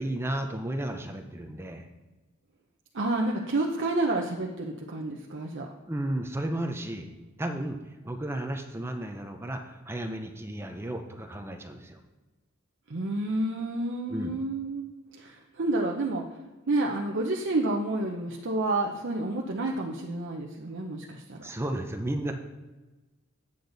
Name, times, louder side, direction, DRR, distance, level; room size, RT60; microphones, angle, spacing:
voice 1, 0.0-1.9 5.9-7.1 7.4-7.8 8.0-12.0 14.1-14.3 21.4-22.3, right 1 dB, 10° right, 5 dB, 0.6 m, -33 dB
voice 2, 2.9-5.7 12.9-14.8 15.1-16.2 16.7-21.5, right 2 dB, 60° right, 0 dB, 0.7 m, -29 dB
8.5 x 8.0 x 4.0 m, 1.2 s
head